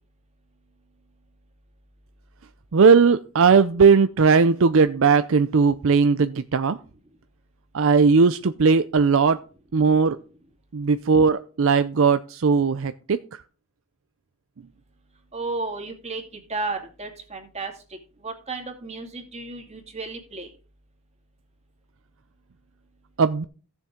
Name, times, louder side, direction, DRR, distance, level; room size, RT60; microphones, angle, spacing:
voice 1, 2.7-6.8 7.7-9.4 9.7-10.2 10.7-13.4 23.2-23.4, right 5 dB, 65° right, 12 dB, 0.5 m, -18 dB
voice 2, 15.3-16.2 16.5-17.7 18.2-20.5, right 3 dB, 30° right, 3 dB, 2.3 m, -33 dB
15.5 x 7.3 x 3.7 m, 0.37 s
head